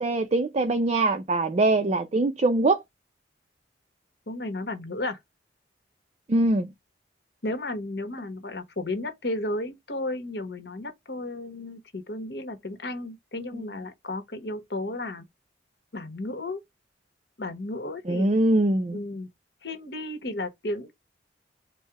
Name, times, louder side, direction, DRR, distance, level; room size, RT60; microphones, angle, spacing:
voice 1, 0.0-2.8 6.3-6.7 18.1-19.0, right 2 dB, 35° right, 0.4 m, -23 dB
voice 2, 4.3-5.2 7.4-15.2 15.9-16.6 17.4-18.3 18.9-19.3 19.6-20.9, left 2 dB, 65° left, 1.2 m, -33 dB
4.5 x 2.1 x 4.7 m
head